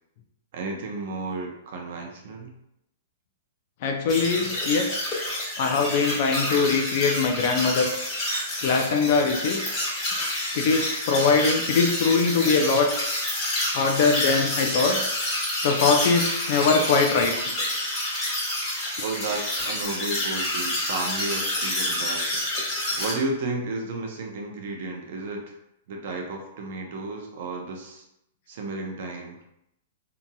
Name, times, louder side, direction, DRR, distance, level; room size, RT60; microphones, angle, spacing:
voice 1, 0.5-2.5 19.0-22.4 23.0-25.5 25.9-28.0 28.5-29.4, right 2 dB, 60° right, 2 dB, 0.5 m, -33 dB
voice 2, 3.8-5.1 5.6-8.0 8.6-9.6 10.5-12.9 13.7-15.0 15.6-17.3, left 4 dB, 55° left, 3 dB, 0.4 m, -22 dB
sound 1, 4.1-23.1, left 1 dB, 25° left, 1.4 m, -28 dB
2.8 x 2.6 x 2.2 m, 0.80 s
hypercardioid pair, 140°, 0 cm